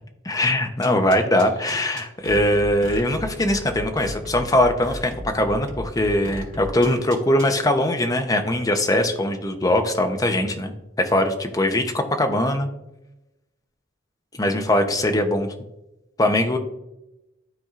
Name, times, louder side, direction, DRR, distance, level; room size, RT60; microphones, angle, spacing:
voice 1, 0.3-10.7 11.0-12.7 14.4-15.5 16.2-16.6, left 1 dB, 20° left, 5 dB, 0.6 m, -21 dB
sound 1, 0.8-7.5, equal, 75° right, 2.1 m, -35 dB
12.0 x 4.2 x 2.4 m, 0.93 s
head